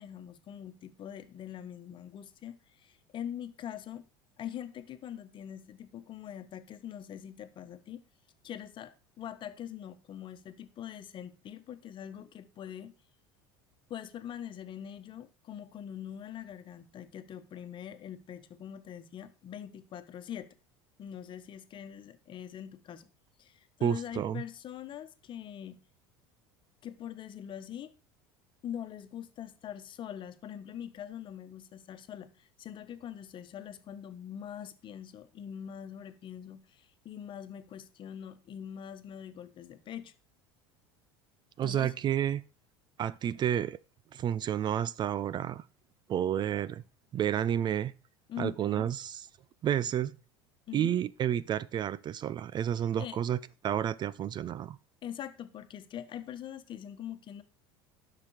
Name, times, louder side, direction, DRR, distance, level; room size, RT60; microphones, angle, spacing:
voice 1, 0.0-4.0 4.4-8.0 8.4-12.9 13.9-20.5 21.0-23.1 23.4-25.8 26.8-27.9 28.6-40.1 41.6-41.9 48.3-48.9 50.7-51.0 53.0-53.2 55.0-57.4, left 9 dB, 40° left, 1.2 m, -43 dB
voice 2, 23.8-24.4 41.6-42.4 43.0-43.8 44.1-45.6 46.1-46.8 47.1-47.9 48.4-49.3 49.6-50.1 50.7-54.8, right 10 dB, 35° right, 0.4 m, -30 dB
11.5 x 6.0 x 4.9 m
hypercardioid pair, 90°, 12 cm